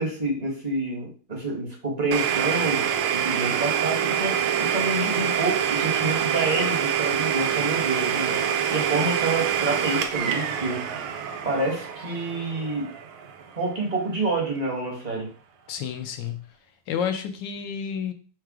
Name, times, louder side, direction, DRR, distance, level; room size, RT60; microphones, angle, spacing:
voice 1, 0.0-2.8 3.1-8.4 8.7-10.8 11.4-12.9 13.5-15.3, right 2 dB, 30° right, -1 dB, 0.8 m, -28 dB
Domestic sounds home sounds, 2.1-13.8, right 8 dB, 85° right, 1.4 m, -26 dB
voice 2, 15.7-16.5 16.9-18.1, left 7 dB, 70° left, 8 dB, 1.2 m, -30 dB
4.7 x 2.2 x 4.7 m, 0.38 s
omnidirectional pair, 2.2 m